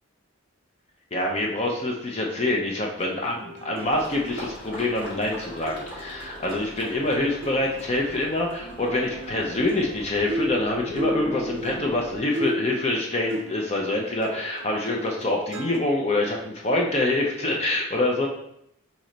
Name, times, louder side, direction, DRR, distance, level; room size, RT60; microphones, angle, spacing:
voice 1, 1.1-18.3, left 2 dB, 30° left, 0 dB, 0.5 m, -26 dB
sound 1, 3.0-13.9 14.2-15.8, equal, 60° right, 0.5 m, -36 dB
sound 2, 3.8-12.2, equal, 55° left, 1.5 m, -41 dB
4.0 x 3.2 x 3.8 m, 0.77 s
head